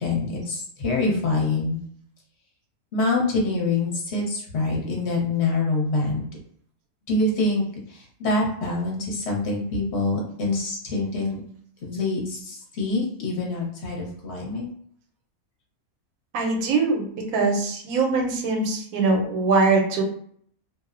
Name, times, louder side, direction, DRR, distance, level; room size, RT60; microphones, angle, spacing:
voice 1, 0.0-1.8 2.9-6.3 7.1-11.4 11.8-14.7, left 2 dB, 55° left, -2 dB, 1.0 m, -25 dB
voice 2, 16.3-17.1 17.3-20.0, right 3 dB, 85° right, 2 dB, 1.1 m, -22 dB
2.6 x 2.0 x 2.4 m, 0.62 s
omnidirectional pair, 1.5 m